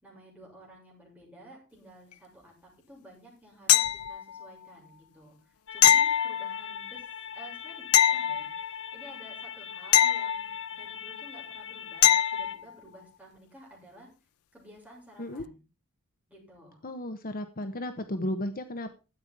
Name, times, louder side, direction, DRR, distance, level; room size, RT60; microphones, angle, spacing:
voice 1, 0.0-5.4 5.7-7.0 7.3-14.1 14.5-15.6 16.3-16.8, right 1 dB, 5° right, -3 dB, 7.2 m, -52 dB
sound 1, 3.7-4.5 5.8-6.9 7.9-9.0 9.9-11.0 12.0-12.6 15.4-15.5, left 11 dB, 85° left, 0.6 m, -23 dB
sound 2, 5.7-12.5, left 8 dB, 60° left, 1.1 m, -42 dB
voice 2, 16.8-18.9, left 1 dB, 40° left, 8 dB, 1.1 m, -34 dB
13.0 x 9.0 x 4.7 m, 0.32 s
head